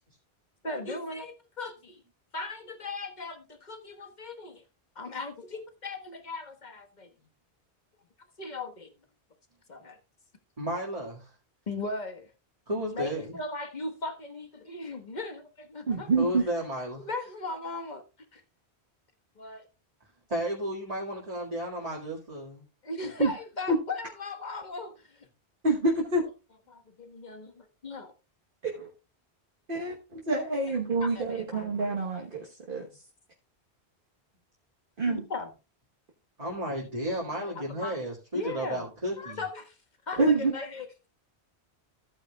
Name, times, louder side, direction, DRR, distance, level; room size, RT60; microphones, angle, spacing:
voice 1, 0.6-2.0 2.3-4.6 4.9-7.1 8.4-8.9 9.7-10.0 11.7-12.3 12.9-16.1 17.0-18.0 18.3-18.4 19.3-19.7 22.8-25.3 26.7-28.1 31.0-31.7 35.0-35.5 37.5-37.6 37.8-38.0 38.3-38.8 39.2-39.8 40.1-40.9, left 3 dB, 40° left, 7 dB, 1.5 m, -38 dB
voice 2, 10.6-11.3 12.7-13.4 16.0-17.1 20.3-22.6 36.4-39.4, equal, 35° right, -3 dB, 2.0 m, -33 dB
voice 3, 15.9-16.4 23.2-23.3 23.7-23.8 25.6-26.3 28.6-28.9 29.7-33.0 35.0-35.2 40.2-40.5, right 3 dB, 55° right, 0 dB, 1.4 m, -27 dB
15.0 x 8.7 x 2.3 m, 0.29 s
omnidirectional pair, 1.1 m